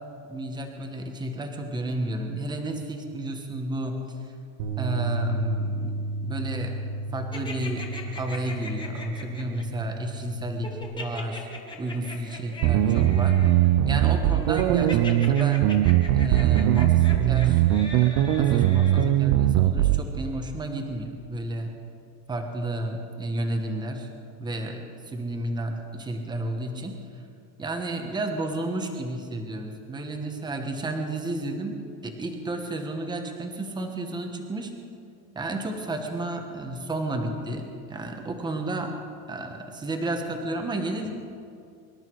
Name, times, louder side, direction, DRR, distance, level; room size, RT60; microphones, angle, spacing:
voice 1, 0.3-4.3 4.8-6.7 7.1-11.5 11.8-13.5 13.8-15.7 16.1-17.6 17.9-21.7 22.3-24.1 24.4-27.0 27.6-34.7 35.3-39.0 39.3-41.1, right 1 dB, 10° right, 4 dB, 1.3 m, -32 dB
Bass guitar, 4.6-10.8, right 2 dB, 65° right, 2.0 m, -32 dB
sound 1, 7.3-9.6 10.6-19.1, left 2 dB, 10° left, 1.5 m, -40 dB
sound 2, 12.6-20.0, right 13 dB, 45° right, 0.5 m, -20 dB
25.0 x 12.0 x 4.7 m, 2.5 s
cardioid pair, 165°, 42 cm